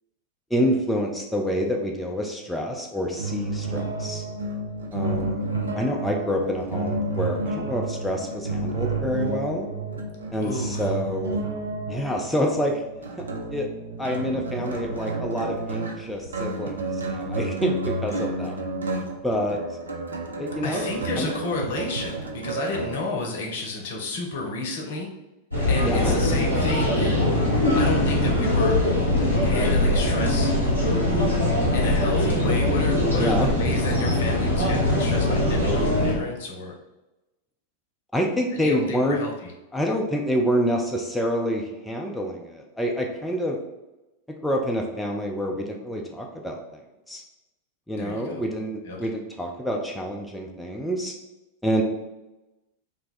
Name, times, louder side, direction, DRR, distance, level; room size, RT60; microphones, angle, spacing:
voice 1, 0.5-4.2 4.9-5.5 5.8-9.7 10.3-11.4 11.9-12.8 13.5-13.7 14.0-18.6 19.0-19.6 20.4-20.9 21.2-21.3 25.8-26.2 33.1-33.5 38.1-39.2 39.7-43.6 44.4-46.8 47.1-47.2 47.9-51.1 51.6-51.8, equal, 5° left, 0 dB, 0.3 m, -27 dB
sound 1, 3.2-23.0, right 2 dB, 70° right, 0.4 m, -31 dB
voice 2, 10.4-10.9 18.1-18.3 20.6-25.1 25.7-28.9 29.4-30.5 31.7-36.7 38.5-39.3 48.0-48.4 48.8-49.0, left 3 dB, 55° left, 1 dB, 0.7 m, -31 dB
sound 2, 25.5-36.1, left 1 dB, 90° right, 0.8 m, -22 dB
2.5 x 2.2 x 3.9 m, 1.0 s
figure-of-eight pair, 90°, 0 cm